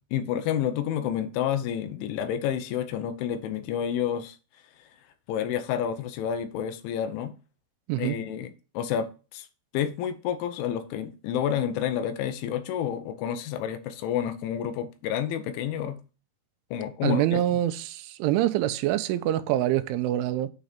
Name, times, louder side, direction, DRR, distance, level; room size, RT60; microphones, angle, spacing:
voice 1, 0.1-4.4 5.3-7.3 8.0-9.5 9.7-16.0 16.7-17.4, left 9 dB, 85° left, 3.3 m, -29 dB
voice 2, 17.0-20.5, right 13 dB, 90° right, 3.1 m, -25 dB
8.9 x 4.1 x 5.1 m
omnidirectional pair, 5.4 m